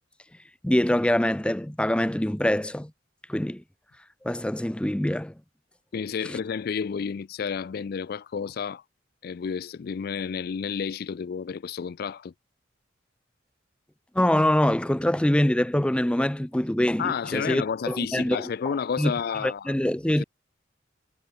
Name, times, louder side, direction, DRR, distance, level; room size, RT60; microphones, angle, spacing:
voice 1, 0.6-2.9 3.3-3.6 4.2-5.3 6.2-6.4 14.1-18.4 19.0-19.1 19.4-20.2, left 1 dB, 5° left, 0.5 m, -24 dB
voice 2, 5.9-8.8 9.2-12.3 17.0-19.8 20.1-20.2, left 6 dB, 55° left, 0.4 m, -31 dB
head